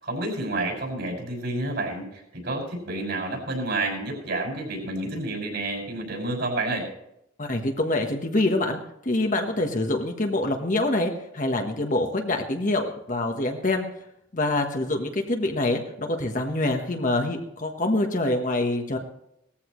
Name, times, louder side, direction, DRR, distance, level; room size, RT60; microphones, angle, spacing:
voice 1, 0.0-6.9, right 2 dB, 60° right, 0 dB, 5.8 m, -29 dB
voice 2, 7.4-13.9 14.3-19.0, left 2 dB, 40° left, 3 dB, 1.3 m, -25 dB
18.5 x 14.5 x 3.2 m, 0.79 s
head